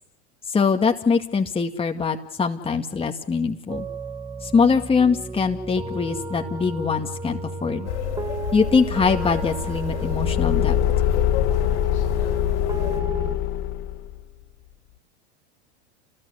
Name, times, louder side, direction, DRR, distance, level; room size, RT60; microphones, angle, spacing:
voice 1, 0.5-3.9 4.4-7.9 8.5-10.8, left 5 dB, 15° left, 4 dB, 2.0 m, -22 dB
sound 1, 3.7-13.4, right 3 dB, 10° right, 1.3 m, -34 dB
sound 2, 7.8-13.0, left 8 dB, 80° left, 4.2 m, -31 dB
Car / Engine, 9.7-14.2, left 12 dB, 45° left, 2.7 m, -23 dB
29.0 x 19.5 x 8.1 m, 0.81 s
hypercardioid pair, 95°, 34 cm